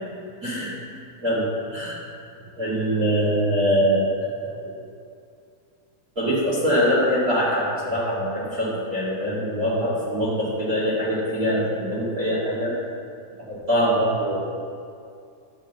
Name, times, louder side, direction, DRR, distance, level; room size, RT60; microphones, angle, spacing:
voice 1, 0.4-0.7 1.2-2.0 2.6-4.8 6.2-12.7 13.4-14.4, equal, 30° right, -8 dB, 2.0 m, -23 dB
11.0 x 4.9 x 7.0 m, 2.4 s
omnidirectional pair, 4.0 m